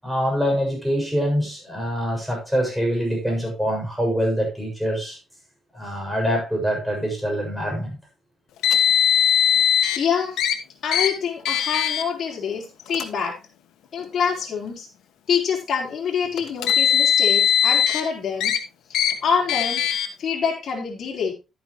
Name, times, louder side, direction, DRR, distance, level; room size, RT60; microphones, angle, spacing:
voice 1, 0.0-5.2 5.7-8.0, equal, ahead, 6.7 m, -24 dB
Car, 8.6-10.0 10.4-10.5 10.9-11.1 11.5-12.0 12.9-13.0 14.0-14.1 16.4-18.0 18.4-18.6 18.9-19.1 19.5-20.1, left 9 dB, 90° left, 1.4 m, -19 dB
voice 2, 10.0-10.4 10.8-13.4 13.9-14.9 15.3-18.6 19.2-19.8 20.2-21.3, left 6 dB, 55° left, 4.5 m, -26 dB
12.5 x 9.4 x 3.1 m
cardioid pair, 100°, 0 cm